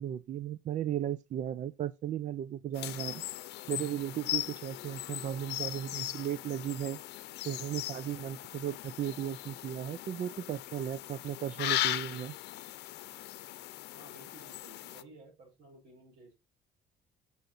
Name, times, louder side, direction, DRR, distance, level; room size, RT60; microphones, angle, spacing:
voice 1, 0.0-3.2 3.7-7.0 7.4-12.4, right 10 dB, 45° right, 0.5 m, -36 dB
sound 1, 2.7-15.0, left 16 dB, 80° left, 0.7 m, -38 dB
voice 2, 13.9-16.4, right 1 dB, 85° right, 5.3 m, -55 dB
7.1 x 6.5 x 4.1 m
cardioid pair, 110°, 17 cm